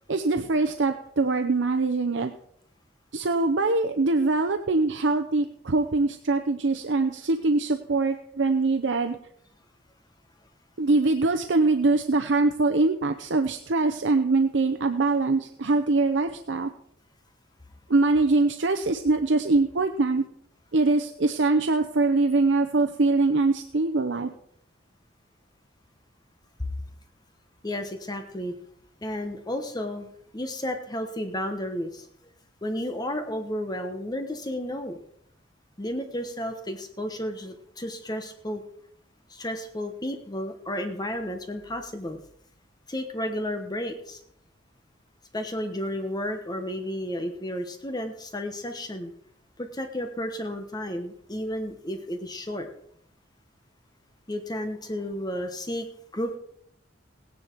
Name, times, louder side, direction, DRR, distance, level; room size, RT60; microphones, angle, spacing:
voice 1, 0.1-2.3 3.1-9.2 10.8-16.7 17.9-20.2 20.7-24.3, right 3 dB, 70° right, 7 dB, 0.7 m, -23 dB
voice 2, 27.6-28.5 29.0-32.1 32.6-35.0 35.8-38.6 39.3-42.2 42.9-44.2 45.3-49.1 49.6-52.7 54.3-55.9 56.1-56.4, left 1 dB, 20° left, 6 dB, 1.1 m, -32 dB
17.5 x 10.0 x 4.6 m, 0.70 s
head